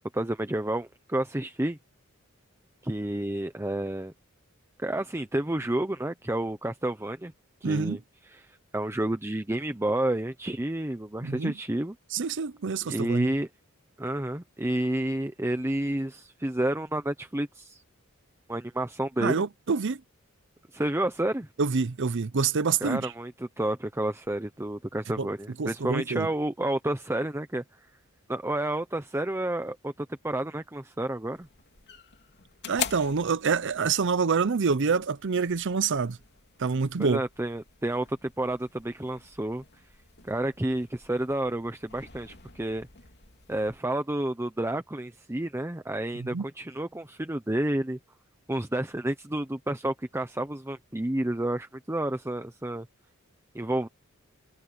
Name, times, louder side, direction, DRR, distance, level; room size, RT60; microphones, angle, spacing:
voice 1, 0.1-1.8 2.8-4.1 4.8-7.3 7.6-8.0 8.3-11.9 12.8-13.5 14.0-17.8 18.5-19.4 20.7-21.5 22.8-27.6 28.3-31.5 37.0-39.6 40.2-42.9 43.5-48.0 48.5-52.9 53.5-53.9, right 1 dB, 10° right, 0.8 m, -30 dB
voice 2, 7.6-8.0 11.2-11.5 12.1-13.3 19.2-20.0 21.6-23.1 25.2-25.3 25.6-26.3 32.7-36.2 36.6-37.2 46.1-46.4, right 5 dB, 60° right, 0.6 m, -27 dB
sound 1, 31.3-43.8, left 8 dB, 55° left, 2.9 m, -44 dB
head